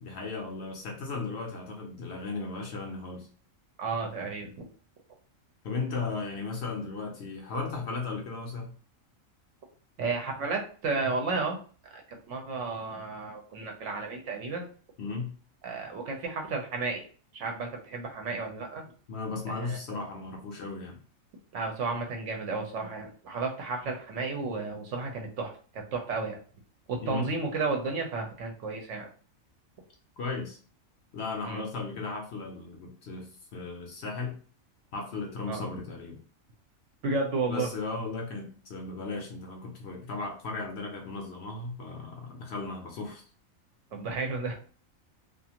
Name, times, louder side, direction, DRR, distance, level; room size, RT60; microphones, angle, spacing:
voice 1, 0.0-3.3 5.6-8.7 15.0-15.3 19.1-21.0 27.0-27.3 30.2-30.6 31.1-34.4 34.9-36.2 37.5-43.2, left 3 dB, 60° left, 2 dB, 0.8 m, -36 dB
voice 2, 3.8-4.7 10.0-11.6 11.9-12.0 12.3-14.7 15.6-17.1 17.3-18.8 19.5-19.8 21.5-26.4 26.9-29.1 31.4-31.6 35.5-35.6 37.0-37.7 43.9-44.6, right 3 dB, 70° right, 2 dB, 0.9 m, -32 dB
2.5 x 2.4 x 2.8 m, 0.41 s
omnidirectional pair, 1.4 m